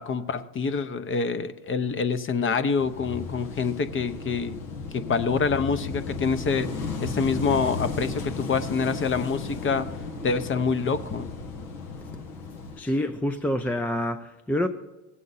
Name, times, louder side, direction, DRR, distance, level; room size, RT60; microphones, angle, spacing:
voice 1, 0.0-4.6 4.9-9.9 10.2-11.3, left 5 dB, 25° left, 0.7 m, -26 dB
Wind / Waves surf, 2.8-12.8, left 4 dB, 85° left, 1.6 m, -34 dB
voice 2, 12.8-14.7, left 1 dB, 5° left, 0.4 m, -27 dB
18.0 x 7.6 x 4.1 m
hypercardioid pair, 80°, 45 cm